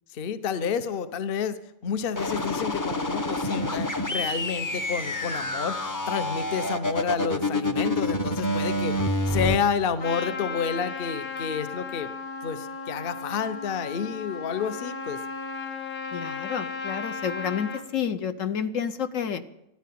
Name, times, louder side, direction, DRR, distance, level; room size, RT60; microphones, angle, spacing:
voice 1, 0.1-1.6 1.8-9.0 9.3-12.1 12.4-15.2, left 6 dB, 45° left, 12 dB, 0.9 m, -30 dB
sound 1, 2.2-9.6, left 1 dB, 20° left, 0.6 m, -28 dB
Trumpet, 10.0-17.8, left 4 dB, 85° left, 2.0 m, -35 dB
voice 2, 16.1-19.4, left 7 dB, 65° left, 10 dB, 1.2 m, -30 dB
14.0 x 11.5 x 8.5 m, 0.88 s
omnidirectional pair, 1.5 m